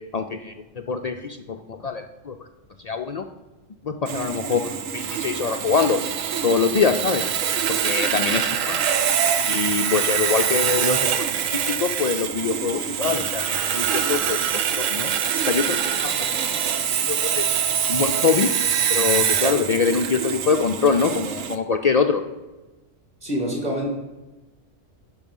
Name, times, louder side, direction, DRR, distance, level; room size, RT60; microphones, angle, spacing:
voice 1, 0.1-0.5 0.9-2.5 2.8-3.2 3.8-6.0 6.4-7.3 7.7-8.8 9.4-11.3 11.5-15.1 15.4-16.1 16.6-17.6 17.9-18.5 18.9-22.2, left 5 dB, 85° left, 5 dB, 0.3 m, -24 dB
Sawing, 4.1-21.6, right 8 dB, 80° right, 1.1 m, -24 dB
voice 2, 23.2-23.9, equal, 30° right, 1 dB, 2.3 m, -26 dB
11.0 x 5.4 x 5.4 m, 1.1 s
omnidirectional pair, 1.4 m